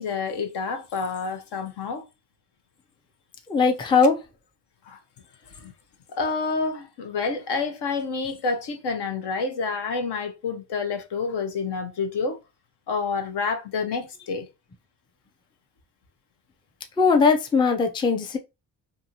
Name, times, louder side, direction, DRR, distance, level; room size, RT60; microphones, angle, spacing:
voice 1, 0.0-2.1 4.8-5.0 5.6-5.7 6.1-12.4 12.9-14.5, left 4 dB, 60° left, 0.8 m, -28 dB
voice 2, 3.5-4.2 17.0-18.4, left 4 dB, 10° left, 0.5 m, -19 dB
2.6 x 2.6 x 2.8 m
hypercardioid pair, 55°, 47 cm